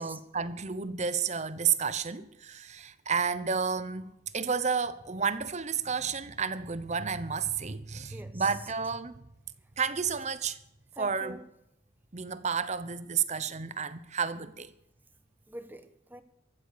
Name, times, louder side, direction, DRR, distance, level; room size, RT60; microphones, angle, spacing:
voice 1, 0.0-9.1 9.8-10.6 11.0-11.4 12.1-14.7, right 6 dB, 35° right, 0.9 m, -31 dB
voice 2, 8.1-8.6 11.0-11.4 15.5-16.2, right 1 dB, 10° right, 1.1 m, -45 dB
15.0 x 12.5 x 6.8 m
head